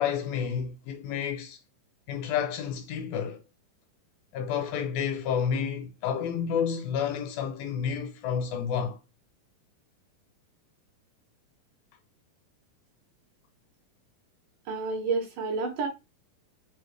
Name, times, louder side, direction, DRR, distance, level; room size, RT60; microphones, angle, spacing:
voice 1, 0.0-1.6 2.1-3.4 4.3-9.0, left 7 dB, 75° left, 2.4 m, -30 dB
voice 2, 14.7-15.9, right 4 dB, 70° right, 2.3 m, -29 dB
5.6 x 2.6 x 3.2 m
omnidirectional pair, 4.3 m